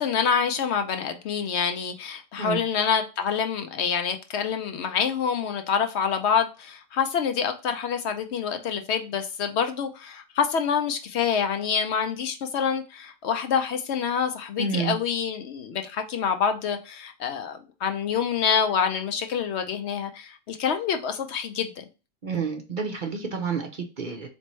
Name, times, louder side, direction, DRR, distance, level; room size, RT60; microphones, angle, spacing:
voice 1, 0.0-21.8, left 7 dB, 70° left, 0.8 m, -26 dB
voice 2, 14.6-15.0 22.2-24.3, right 5 dB, 50° right, 0.7 m, -29 dB
4.1 x 3.3 x 3.1 m
omnidirectional pair, 1.3 m